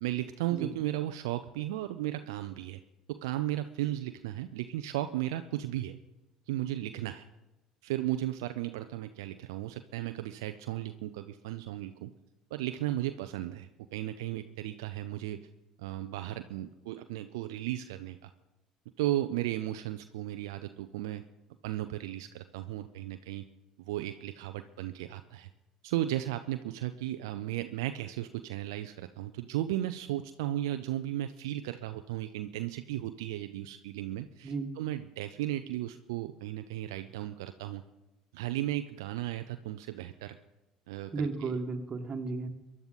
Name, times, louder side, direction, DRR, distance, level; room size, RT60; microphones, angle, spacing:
voice 1, 0.0-2.8 3.1-6.0 6.5-7.3 7.8-12.1 12.5-15.4 15.8-18.3 19.0-21.2 21.6-23.5 23.8-25.5 25.8-37.8 38.3-40.4 40.9-41.6, right 14 dB, 70° right, 9 dB, 0.5 m, -35 dB
voice 2, 41.1-42.5, right 3 dB, 30° right, 5 dB, 1.8 m, -34 dB
23.0 x 11.0 x 4.1 m, 0.99 s
figure-of-eight pair, 60°, 2 cm